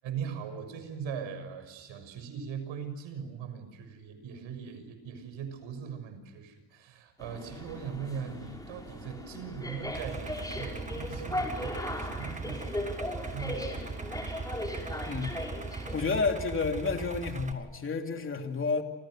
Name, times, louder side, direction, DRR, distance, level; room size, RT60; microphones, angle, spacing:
voice 1, 0.0-12.6 13.1-13.7, right 7 dB, 85° right, 9 dB, 6.6 m, -40 dB
sound 1, 7.2-16.0, left 1 dB, 10° left, 5.4 m, -38 dB
Idling, 9.9-17.5, right 4 dB, 15° right, 1.5 m, -39 dB
voice 2, 15.1-15.4 15.9-18.8, left 4 dB, 25° left, 4 dB, 3.0 m, -30 dB
29.0 x 28.0 x 6.5 m, 1.1 s
cardioid pair, 155°, 45 cm